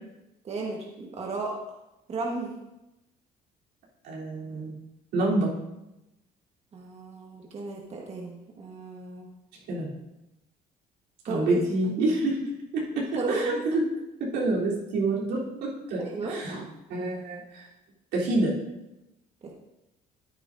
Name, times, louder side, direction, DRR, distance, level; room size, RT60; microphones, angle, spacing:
voice 1, 0.4-1.5 2.1-2.5 6.7-9.3 11.3-11.6 13.1-13.6 16.0-16.4 19.4-19.5, right 3 dB, 40° right, -1 dB, 1.4 m, -34 dB
voice 2, 4.0-4.7 5.1-5.5 9.7-9.9 11.2-13.8 14.2-16.6 16.9-17.7 18.1-18.5, right 2 dB, 85° right, -5 dB, 3.4 m, -27 dB
13.0 x 9.9 x 2.6 m, 0.94 s
cardioid pair, 110°, 17 cm